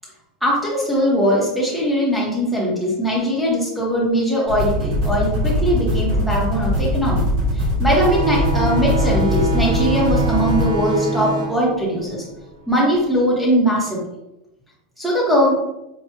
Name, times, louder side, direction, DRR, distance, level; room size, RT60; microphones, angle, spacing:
voice 1, 0.4-7.2 7.5-12.2 12.7-14.0 15.0-15.6, equal, ahead, -6 dB, 1.2 m, -20 dB
sound 1, 4.5-10.6, equal, 50° right, 1.4 m, -21 dB
sound 2, 7.9-13.0, right 2 dB, 70° right, 0.7 m, -25 dB
4.6 x 2.6 x 3.0 m, 0.91 s
supercardioid pair, 160°, 4 cm